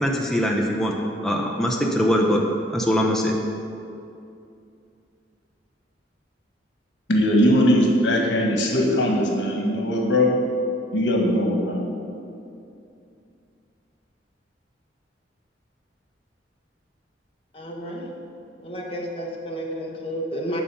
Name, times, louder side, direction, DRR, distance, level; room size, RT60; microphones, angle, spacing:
voice 1, 0.0-0.9 1.2-2.4 2.7-3.3, equal, 5° left, -1 dB, 0.7 m, -22 dB
voice 2, 7.1-10.3 10.9-11.8, equal, 80° left, 0 dB, 1.4 m, -20 dB
voice 3, 17.5-18.1 18.6-20.6, equal, 30° left, -1 dB, 1.2 m, -31 dB
10.5 x 4.0 x 6.9 m, 2.6 s
head